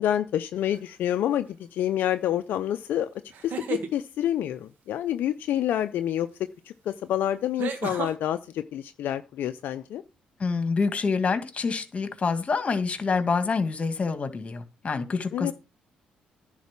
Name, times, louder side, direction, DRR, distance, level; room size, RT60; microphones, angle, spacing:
voice 1, 0.0-3.1 3.4-6.3 6.9-10.0 15.3-15.5, left 11 dB, 75° left, 0.5 m, -28 dB
sound 1, 0.7-1.1 3.3-3.9 6.2-6.3 7.6-8.1, right 7 dB, 70° right, 1.6 m, -33 dB
voice 2, 10.4-15.5, left 4 dB, 40° left, 1.8 m, -27 dB
10.5 x 4.1 x 7.3 m
supercardioid pair, 60°, 3 cm